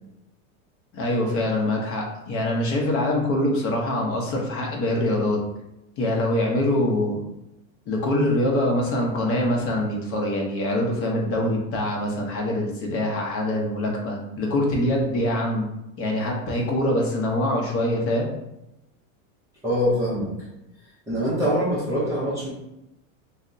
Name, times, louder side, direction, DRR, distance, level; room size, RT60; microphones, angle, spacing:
voice 1, 0.9-5.4 6.0-7.2 7.9-15.7 16.0-18.3, left 1 dB, 35° left, -1 dB, 0.6 m, -24 dB
voice 2, 19.6-20.3 21.1-22.5, equal, 10° right, -10 dB, 0.4 m, -24 dB
3.3 x 2.0 x 2.5 m, 0.89 s
supercardioid pair, 140°, 41 cm